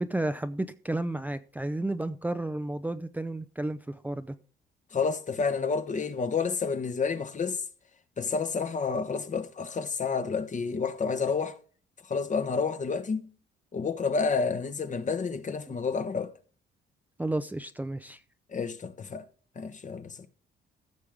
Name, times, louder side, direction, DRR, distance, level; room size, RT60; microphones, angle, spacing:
voice 1, 0.0-4.3 15.7-15.8 17.2-18.2, right 1 dB, 10° right, 0.6 m, -32 dB
voice 2, 4.9-7.6 8.2-11.6 12.1-13.3 13.7-16.3 18.5-19.2 19.6-20.2, left 5 dB, 40° left, 1.1 m, -29 dB
15.0 x 6.4 x 3.6 m
cardioid pair, 90°, 20 cm